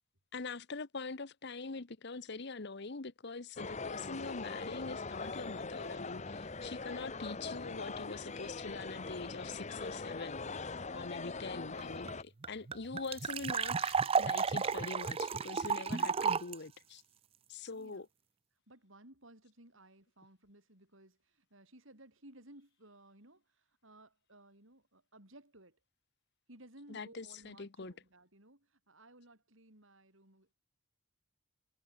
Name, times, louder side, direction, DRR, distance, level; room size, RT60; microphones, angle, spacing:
voice 1, 0.3-17.0 17.5-18.1 26.9-27.9, left 4 dB, 50° left, 0.9 m, -44 dB
sound 1, 3.6-12.2, left 4 dB, 35° left, 1.0 m, -42 dB
sound 2, 11.8-11.9 12.1-12.2 12.4-16.5, right 5 dB, 25° right, 0.4 m, -32 dB
voice 2, 17.7-18.1 18.7-25.8 26.5-30.5, right 1 dB, 60° right, 6.3 m, -59 dB
head